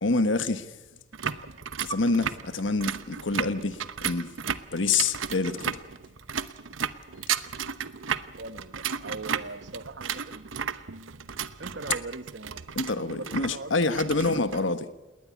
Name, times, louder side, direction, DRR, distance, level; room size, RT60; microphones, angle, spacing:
voice 1, 0.0-0.7 1.8-4.3 4.7-5.8 12.8-14.9, left 3 dB, 75° left, 1.3 m, -27 dB
sound 1, 1.1-14.7, right 7 dB, 90° right, 0.9 m, -34 dB
voice 2, 8.4-10.4 11.6-12.6 13.0-13.7 14.1-14.5, right 3 dB, 65° right, 1.2 m, -40 dB
20.0 x 19.5 x 8.5 m
head